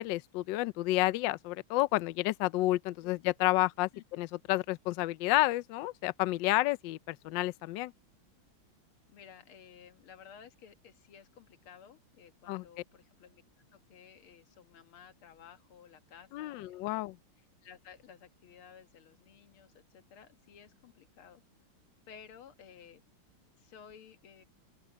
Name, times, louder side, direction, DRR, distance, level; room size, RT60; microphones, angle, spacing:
voice 1, 0.0-7.9 12.5-12.6 16.3-17.2, left 18 dB, 75° left, 1.1 m, -30 dB
voice 2, 9.1-13.4 13.7-17.0 17.6-21.4 22.1-23.0 23.6-24.4, left 7 dB, 90° left, 2.2 m, -55 dB
open air
omnidirectional pair, 2.3 m